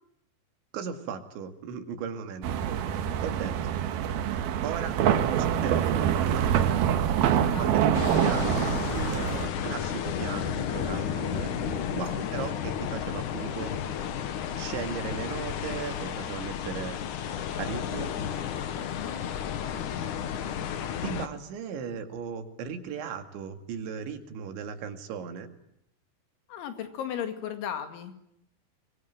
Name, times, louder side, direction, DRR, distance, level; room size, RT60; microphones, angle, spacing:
voice 1, 0.7-2.6 3.2-3.7 4.6-5.0 5.6-6.5 7.6-13.7 14.6-17.0 17.6-18.1 21.0-25.5, right 7 dB, 85° right, 7 dB, 4.6 m, -37 dB
sound 1, 2.4-9.5, right 9 dB, 65° right, 3.0 m, -25 dB
voice 2, 7.4-7.7 12.2-12.3 18.8-19.1 26.5-28.1, left 9 dB, 85° left, 8 dB, 4.7 m, -36 dB
sound 2, 7.9-21.3, left 9 dB, 65° left, 2.1 m, -32 dB
24.5 x 22.5 x 9.3 m, 0.77 s
omnidirectional pair, 5.2 m